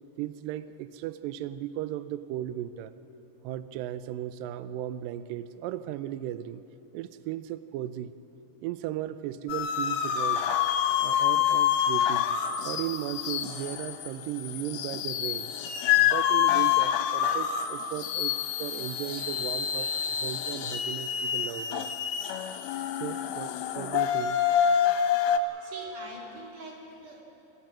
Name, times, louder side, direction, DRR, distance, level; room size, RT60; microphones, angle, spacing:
voice 1, 0.2-3.0 3.4-6.6 6.9-8.2 8.6-10.5 11.0-12.3 12.6-15.5 16.0-21.9 23.0-24.4 25.5-25.9, right 12 dB, 90° right, 13 dB, 1.9 m, -36 dB
sound 1, 9.5-25.4, left 9 dB, 75° left, 2.5 m, -27 dB
voice 2, 25.6-27.2, right 2 dB, 50° right, -2 dB, 4.6 m, -44 dB
27.0 x 16.0 x 7.4 m, 3.0 s
omnidirectional pair, 4.7 m